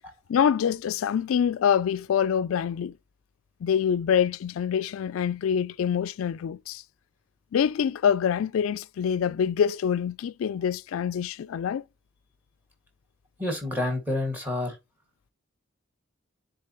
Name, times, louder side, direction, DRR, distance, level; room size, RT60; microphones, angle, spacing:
voice 1, 0.3-2.9 3.6-6.8 7.5-11.8, left 8 dB, 75° left, 0.3 m, -25 dB
voice 2, 13.4-14.8, left 2 dB, 10° right, 2.0 m, -28 dB
9.9 x 3.8 x 3.0 m
head